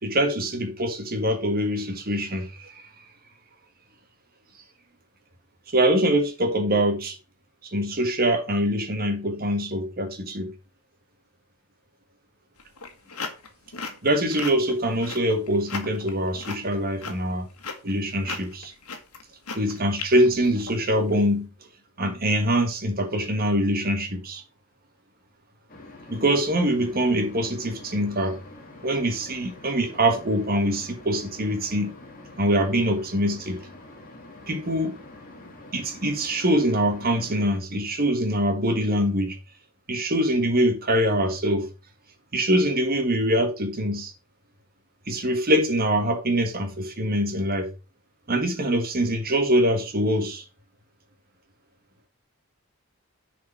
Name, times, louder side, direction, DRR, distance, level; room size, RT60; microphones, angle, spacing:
voice 1, 0.0-2.8 5.7-7.2 7.6-10.5 14.0-17.5 17.8-18.7 19.5-21.5 22.0-24.4 26.1-28.4 28.8-31.9 32.4-33.6 34.5-35.0 35.7-39.4 39.9-41.7 42.3-44.1 45.1-47.7 48.3-50.4, equal, 40° right, 1.7 m, -24 dB
sound 1, 12.6-21.2, left 4 dB, 85° left, 1.7 m, -37 dB
sound 2, 25.7-37.6, left 2 dB, 40° left, 2.3 m, -46 dB
6.7 x 5.0 x 5.8 m
head